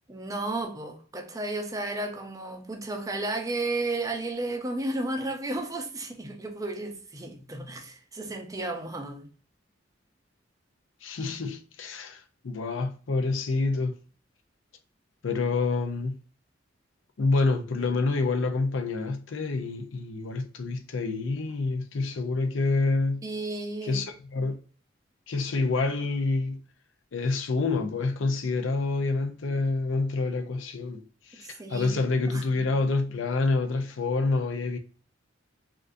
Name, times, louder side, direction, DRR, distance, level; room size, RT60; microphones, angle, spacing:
voice 1, 0.1-9.3 23.2-24.0 31.3-32.4, right 2 dB, 20° right, 0.5 m, -33 dB
voice 2, 11.0-13.9 15.2-16.2 17.2-23.2 23.8-24.6 25.3-26.6 27.1-34.8, left 3 dB, 90° left, 0.5 m, -27 dB
3.5 x 2.5 x 2.5 m
head